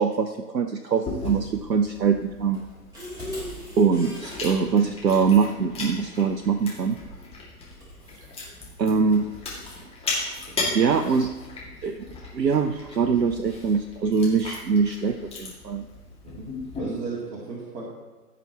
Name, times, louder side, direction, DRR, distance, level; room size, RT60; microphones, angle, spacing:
voice 1, 0.0-2.6 3.8-7.0 8.8-9.3 10.7-11.3 11.8-12.0 12.3-15.9, right 5 dB, 85° right, 7 dB, 0.7 m, -23 dB
Chewing mastication, 1.1-16.8, left 3 dB, 10° left, 2.2 m, -37 dB
sound 1, 2.5-4.4 7.0-7.3 7.8-8.5, left 1 dB, 10° right, 2.9 m, -38 dB
voice 2, 10.5-10.8 16.2-16.5 16.8-17.8, right 4 dB, 40° right, -6 dB, 2.1 m, -35 dB
15.5 x 6.0 x 3.0 m, 1.3 s
figure-of-eight pair, 115°, 49 cm